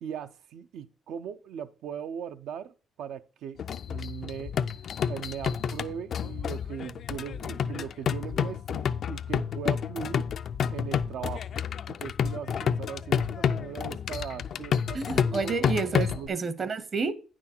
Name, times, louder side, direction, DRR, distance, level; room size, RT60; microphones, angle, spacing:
voice 1, 0.0-3.6 3.9-4.6 5.0-10.3 10.7-11.5 11.9-15.6 16.1-16.4, right 8 dB, 80° right, 0.5 m, -39 dB
sound 1, 3.6-16.3, left 7 dB, 60° left, 0.4 m, -30 dB
voice 2, 14.9-17.1, right 4 dB, 45° right, 0.8 m, -30 dB
9.3 x 6.1 x 4.3 m
cardioid pair, 90°, 0 cm